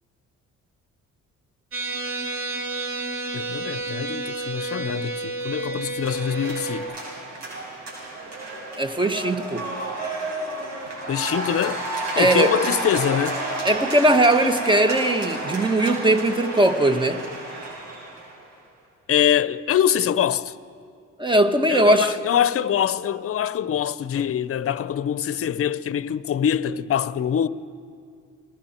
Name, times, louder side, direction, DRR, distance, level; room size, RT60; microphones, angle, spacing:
sound 1, 1.7-6.8, right 3 dB, 45° right, 2.9 m, -30 dB
voice 1, 3.3-6.9 11.1-11.8 12.1-13.4 19.1-20.5 21.7-27.5, left 9 dB, 50° left, 0.7 m, -24 dB
sound 2, 6.0-18.4, right 2 dB, 65° right, 7.1 m, -31 dB
voice 2, 8.8-9.7 12.2-12.6 13.6-17.2 21.2-22.1, right 1 dB, 15° right, 1.4 m, -19 dB
28.5 x 20.5 x 4.4 m
cardioid pair, 90°, 30 cm